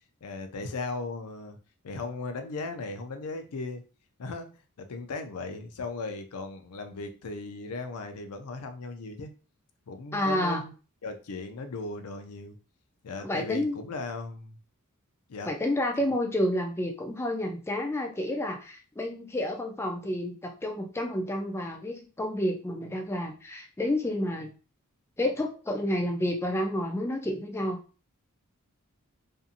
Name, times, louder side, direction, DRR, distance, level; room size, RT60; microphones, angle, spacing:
voice 1, 0.2-1.6 1.8-3.8 4.2-4.5 4.8-9.3 9.9-10.7 11.0-12.6 13.0-14.6 15.3-15.5, left 3 dB, 85° left, 6 dB, 0.5 m, -37 dB
voice 2, 10.1-10.6 13.2-13.7 15.5-24.5 25.2-27.8, left 1 dB, 10° left, 3 dB, 0.4 m, -30 dB
2.6 x 2.6 x 2.4 m, 0.35 s
head